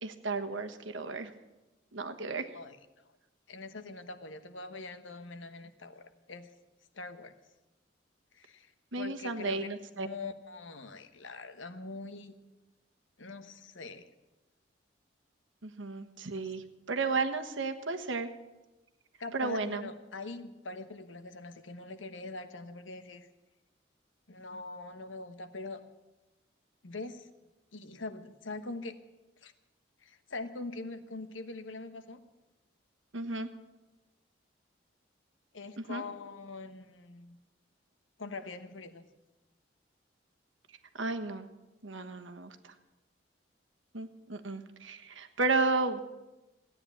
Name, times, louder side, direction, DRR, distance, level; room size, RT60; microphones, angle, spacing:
voice 1, 0.0-1.3 1.9-2.5 8.9-10.1 15.6-18.3 19.3-19.9 33.1-33.5 35.8-36.0 40.9-41.5 41.8-42.7 43.9-46.0, right 3 dB, 80° right, 6 dB, 1.3 m, -33 dB
voice 2, 2.5-3.0 3.5-6.5 6.9-7.3 8.3-9.7 9.9-12.3 13.2-14.0 16.4-16.5 19.2-23.3 24.3-25.8 26.8-27.3 27.7-29.0 29.4-29.5 30.0-32.2 35.5-37.4 38.2-39.0, left 3 dB, 85° left, 10 dB, 1.2 m, -43 dB
16.5 x 9.8 x 8.6 m, 1.0 s
head